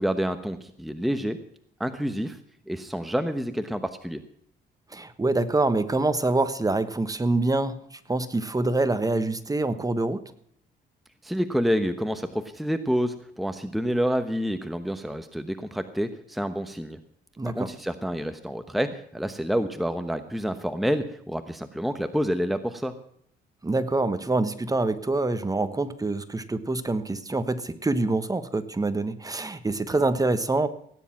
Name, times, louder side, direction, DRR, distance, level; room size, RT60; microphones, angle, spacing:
voice 1, 0.0-1.4 1.8-2.4 2.7-4.2 11.2-17.0 17.4-22.9, equal, ahead, 9 dB, 1.0 m, -28 dB
voice 2, 4.9-10.3 17.4-17.7 23.6-30.7, right 2 dB, 20° right, 12 dB, 1.2 m, -26 dB
17.5 x 10.0 x 5.9 m, 0.67 s
cardioid pair, 90°, 20 cm